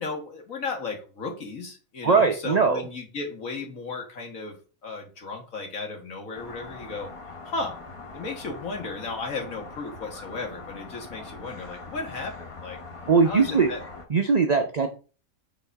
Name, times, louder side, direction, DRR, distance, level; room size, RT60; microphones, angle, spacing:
voice 1, 0.0-4.6 4.8-7.1 7.4-7.8 8.1-12.8 13.2-13.8, left 3 dB, 70° left, 2 dB, 1.9 m, -35 dB
voice 2, 2.0-2.8 13.1-13.7 14.1-14.9, right 5 dB, 55° right, 5 dB, 0.4 m, -20 dB
sound 1, 6.3-14.1, left 3 dB, 30° left, 0.8 m, -42 dB
6.8 x 4.1 x 4.1 m, 0.37 s
omnidirectional pair, 1.5 m